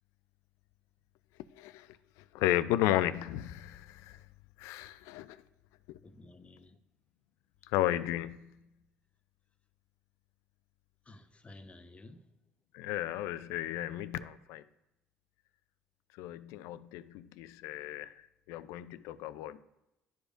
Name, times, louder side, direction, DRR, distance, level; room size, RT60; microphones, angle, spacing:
voice 1, 2.3-4.2 4.6-5.4 7.7-8.5 12.7-14.6 16.2-18.1 18.5-19.6, left 13 dB, 75° left, 0.4 m, -33 dB
voice 2, 6.0-6.8 11.0-12.3, left 2 dB, 25° left, 0.8 m, -53 dB
11.5 x 4.9 x 2.5 m
hypercardioid pair, 65°, 5 cm